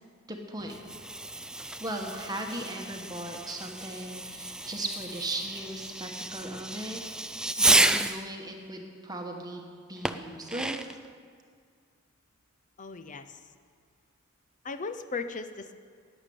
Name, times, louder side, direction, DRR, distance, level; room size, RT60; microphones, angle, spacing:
voice 1, 0.3-0.8 1.8-7.0 7.6-10.9, right 1 dB, 20° right, 1 dB, 1.2 m, -37 dB
Fireworks, 0.6-8.3 10.0-11.1, right 1 dB, 5° right, 0.3 m, -30 dB
voice 2, 12.8-13.4 14.6-15.7, left 4 dB, 35° left, 10 dB, 0.7 m, -37 dB
11.5 x 9.1 x 8.5 m, 2.1 s
head